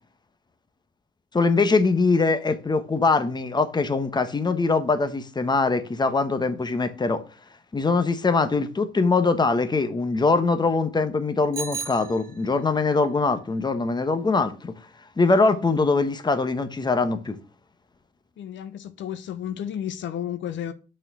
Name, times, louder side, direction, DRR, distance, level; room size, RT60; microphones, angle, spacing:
voice 1, 1.3-7.2 7.7-14.7 15.2-17.4, left 3 dB, 20° left, 1.0 m, -22 dB
Bicycle bell, 11.5-12.8, right 5 dB, 45° right, 1.1 m, -35 dB
voice 2, 18.4-20.7, left 10 dB, 70° left, 0.7 m, -32 dB
6.5 x 4.4 x 6.1 m
cardioid pair, 90°, 20 cm